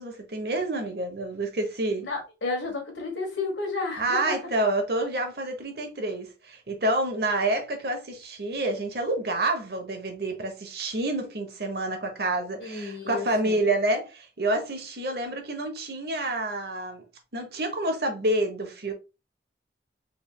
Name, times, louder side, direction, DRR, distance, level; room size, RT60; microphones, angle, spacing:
voice 1, 0.0-2.1 4.0-17.0 17.3-18.9, right 2 dB, 60° right, 1.0 m, -28 dB
voice 2, 2.0-4.4 12.6-13.6, left 3 dB, 90° left, 1.4 m, -32 dB
3.6 x 3.4 x 2.3 m
head